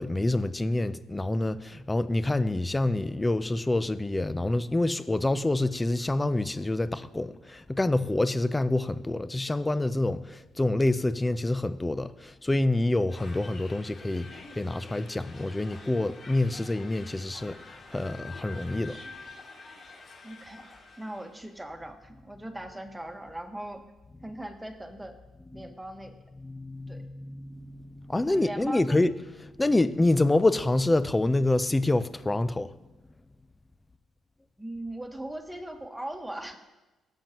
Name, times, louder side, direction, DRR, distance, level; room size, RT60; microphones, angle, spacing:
voice 1, 0.0-17.6 17.9-19.0 26.4-29.1 29.4-32.7, left 2 dB, 15° left, 0.5 m, -27 dB
sound 1, 13.1-21.5, left 3 dB, 50° left, 2.6 m, -48 dB
voice 2, 20.2-20.6 21.0-23.8 24.2-25.1 25.5-26.1 26.9-27.0 28.1-29.1 34.6-36.6, right 1 dB, 10° right, 1.4 m, -39 dB
17.5 x 7.5 x 3.0 m
cardioid pair, 90°, 0 cm